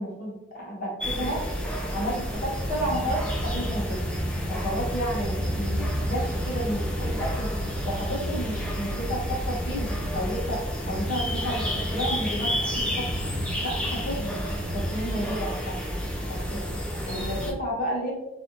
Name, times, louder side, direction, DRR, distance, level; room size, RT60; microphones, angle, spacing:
voice 1, 0.0-1.4 1.9-4.0 4.5-7.5 7.8-13.0 13.6-14.4 14.7-16.0 16.3-18.1, equal, 45° left, -5 dB, 1.2 m, -32 dB
sound 1, 1.0-17.5, equal, 5° left, 0.5 m, -31 dB
sound 2, 2.3-15.0, equal, 55° right, 1.0 m, -34 dB
3.2 x 2.7 x 2.9 m, 1.0 s
head